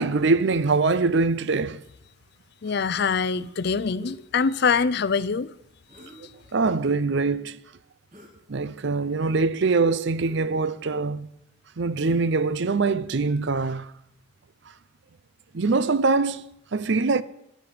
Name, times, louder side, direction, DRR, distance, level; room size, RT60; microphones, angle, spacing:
voice 1, 0.0-1.8 6.0-6.1 6.5-7.6 8.5-11.3 11.8-13.9 15.5-17.2, right 3 dB, 55° right, 0.5 m, -23 dB
voice 2, 2.6-5.5, left 5 dB, 50° left, 0.4 m, -24 dB
sound 1, 3.4-3.6 4.0-4.2 5.9-6.5 8.1-8.4 8.8-9.4 10.1-11.0 12.0-12.5, equal, 35° right, 3.5 m, -49 dB
11.5 x 10.5 x 7.7 m
head